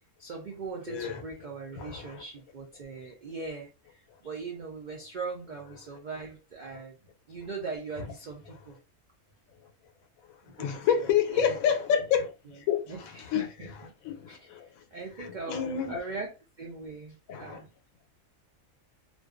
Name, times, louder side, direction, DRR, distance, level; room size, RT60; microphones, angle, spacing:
voice 1, 0.2-7.0 7.3-8.8 10.5-11.6 12.4-12.6 12.9-13.9 14.3-16.3 16.6-17.7, right 4 dB, 85° right, 0.4 m, -40 dB
voice 2, 0.9-1.2 1.8-2.0 10.6-12.3 12.7-12.8 13.3-13.5 14.0-14.6 15.2-16.0 17.3-17.6, left 8 dB, 80° left, 1.0 m, -27 dB
2.5 x 2.2 x 2.4 m
omnidirectional pair, 1.4 m